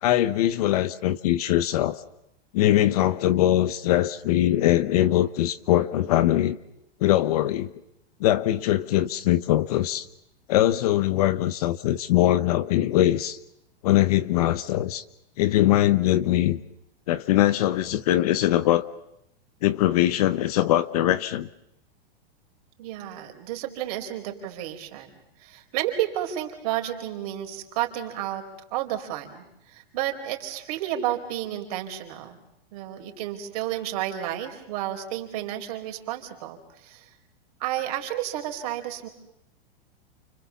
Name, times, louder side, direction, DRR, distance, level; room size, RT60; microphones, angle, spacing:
voice 1, 0.0-2.0 2.5-6.6 7.0-7.7 8.2-10.1 10.5-13.4 13.8-15.0 15.4-16.6 17.1-18.8 19.6-21.5, left 13 dB, 40° left, 14 dB, 0.9 m, -22 dB
voice 2, 22.8-25.1 25.4-28.4 28.7-32.4 32.7-37.1 37.6-39.1, right 12 dB, 40° right, 4 dB, 4.5 m, -31 dB
29.5 x 26.0 x 7.2 m, 0.82 s
supercardioid pair, 175°, 30 cm